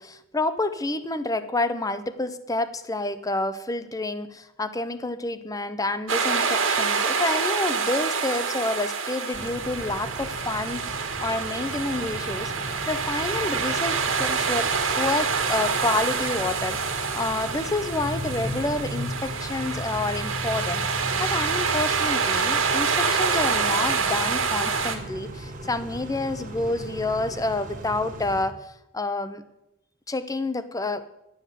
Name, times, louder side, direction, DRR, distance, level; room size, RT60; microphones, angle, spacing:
voice 1, 0.0-10.8 11.2-12.5 12.9-14.7 15.0-20.8 21.2-28.6 28.9-29.4 30.1-31.1, left 2 dB, 20° left, 12 dB, 0.7 m, -28 dB
sound 1, 6.1-25.0, right 5 dB, 75° right, 1.7 m, -26 dB
Car / Idling / Accelerating revving vroom, 9.3-28.4, equal, 40° right, 1.9 m, -37 dB
11.5 x 8.0 x 7.5 m, 0.89 s
head